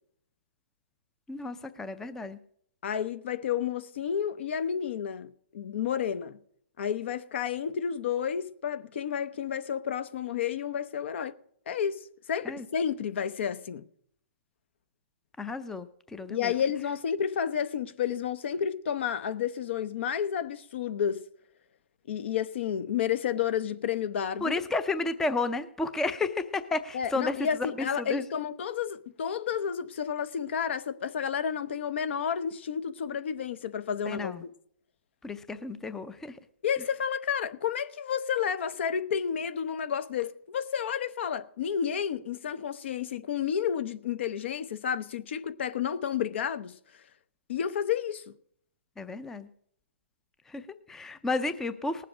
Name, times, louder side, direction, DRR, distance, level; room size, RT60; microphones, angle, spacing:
voice 1, 1.3-2.4 12.4-12.7 15.4-16.5 24.4-28.2 34.1-34.4 35.2-36.4 49.0-49.5 50.5-52.0, left 3 dB, 5° left, 0.5 m, -32 dB
voice 2, 2.8-6.4 6.8-11.4 11.7-13.9 16.3-21.3 22.1-24.6 26.9-34.5 36.6-46.8 47.5-48.3, left 8 dB, 55° left, 0.7 m, -31 dB
19.0 x 7.5 x 4.9 m
hypercardioid pair, 140°, 7 cm